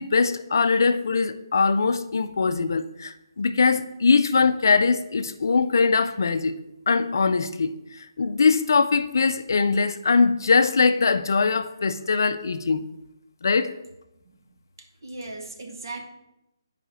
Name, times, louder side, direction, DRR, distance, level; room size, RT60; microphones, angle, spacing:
voice 1, 0.0-6.6 6.9-12.9 13.4-13.7, left 4 dB, 50° left, 0.4 m, -22 dB
voice 2, 14.8-16.0, right 2 dB, 55° right, 1.1 m, -37 dB
5.1 x 5.0 x 6.2 m
hypercardioid pair, 175°, 2 cm